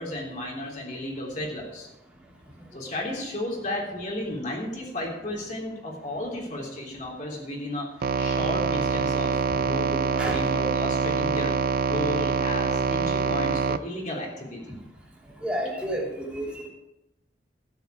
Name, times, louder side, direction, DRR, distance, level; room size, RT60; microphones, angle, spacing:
voice 1, 0.0-1.9 2.7-7.9 8.2-11.6 11.9-14.6, left 1 dB, 45° left, -2 dB, 3.4 m, -33 dB
sound 1, 8.0-13.8, right 5 dB, 55° right, 0.4 m, -25 dB
voice 2, 15.4-16.7, right 1 dB, 5° right, -4 dB, 2.9 m, -30 dB
13.0 x 9.6 x 4.9 m, 0.93 s
head